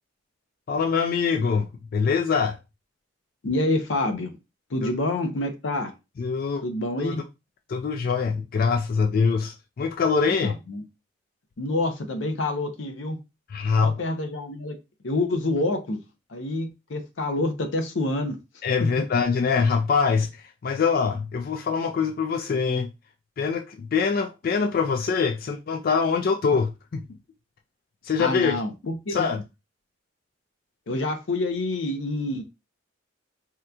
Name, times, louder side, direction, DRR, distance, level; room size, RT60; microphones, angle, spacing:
voice 1, 0.7-1.7 1.9-2.6 4.8-4.9 6.2-6.6 7.0-7.2 7.7-10.5 13.5-14.0 18.6-22.9 23.4-27.0 28.0-28.6 29.1-29.4, left 5 dB, 50° left, 0.3 m, -24 dB
voice 2, 3.4-4.3 4.7-5.9 6.6-7.2 10.3-10.8 11.6-13.2 13.8-14.8 15.0-16.0 16.3-18.4 18.8-18.9 28.2-29.2 30.9-32.4, left 2 dB, 85° left, 0.6 m, -27 dB
3.6 x 2.8 x 2.2 m
head